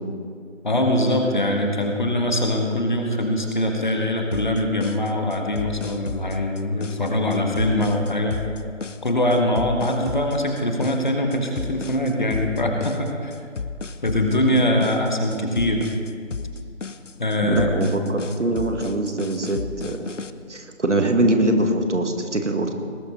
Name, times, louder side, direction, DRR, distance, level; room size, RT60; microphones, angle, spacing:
voice 1, 0.6-8.4 9.0-13.3 14.0-15.9 17.2-17.9, left 1 dB, 40° left, 2 dB, 1.6 m, -22 dB
sound 1, 4.3-20.3, left 4 dB, 70° left, 0.8 m, -34 dB
voice 2, 17.4-20.1 20.5-22.7, right 1 dB, 65° right, 5 dB, 1.9 m, -23 dB
19.0 x 10.5 x 4.2 m, 2.2 s
figure-of-eight pair, 165°, 38 cm